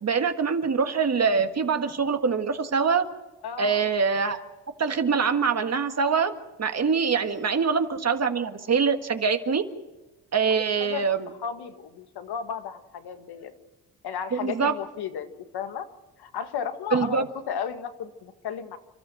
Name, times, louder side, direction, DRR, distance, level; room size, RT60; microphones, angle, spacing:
voice 1, 0.0-3.0 3.6-4.4 4.8-6.3 6.6-9.6 10.3-11.3 14.3-14.7 16.9-17.2, right 5 dB, 40° right, 8 dB, 1.7 m, -24 dB
voice 2, 3.4-3.9 7.3-7.5 10.8-11.1 11.4-13.5 14.0-15.9 16.2-18.8, left 8 dB, 75° left, 8 dB, 1.8 m, -34 dB
30.0 x 13.0 x 7.7 m, 1.1 s
supercardioid pair, 65°, 39 cm